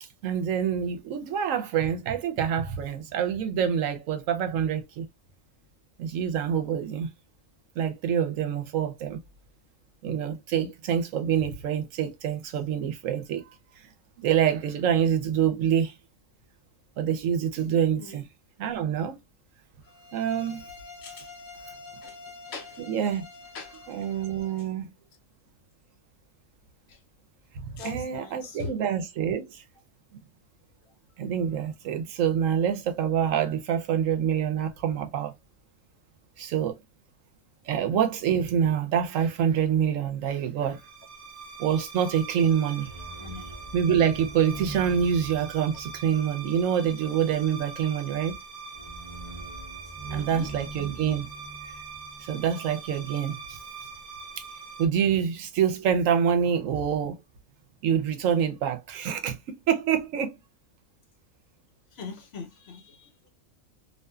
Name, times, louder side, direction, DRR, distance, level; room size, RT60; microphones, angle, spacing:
voice 1, 0.2-5.1 6.0-7.1 7.8-9.2 10.0-13.4 14.2-15.9 17.0-18.3 18.6-19.2 20.1-20.7 22.8-23.2 23.9-24.9 27.5-29.6 31.2-35.3 36.4-36.7 37.7-40.8 41.6-42.9 43.7-48.4 50.1-51.3 52.2-53.6 54.8-57.2 57.8-60.4, right 8 dB, 85° right, 1.0 m, -26 dB
sound 1, 19.8-24.6, left 3 dB, 90° left, 1.1 m, -47 dB
voice 2, 22.5-22.8 23.5-23.7 27.8-28.7 43.2-43.4 50.1-50.5 62.0-63.3, left 5 dB, 60° left, 0.8 m, -41 dB
sound 2, 40.7-54.9, right 4 dB, 35° right, 0.7 m, -41 dB
2.6 x 2.4 x 2.2 m
omnidirectional pair, 1.3 m